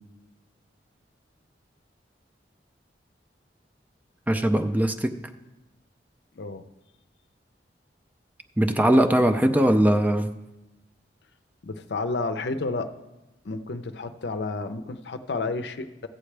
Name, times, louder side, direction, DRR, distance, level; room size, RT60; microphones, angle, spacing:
voice 1, 4.3-5.1 8.6-10.3, right 1 dB, 10° right, 8 dB, 0.4 m, -20 dB
voice 2, 11.6-12.9 13.4-16.1, left 3 dB, 70° left, 9 dB, 0.6 m, -31 dB
14.0 x 8.5 x 3.3 m, 1.0 s
head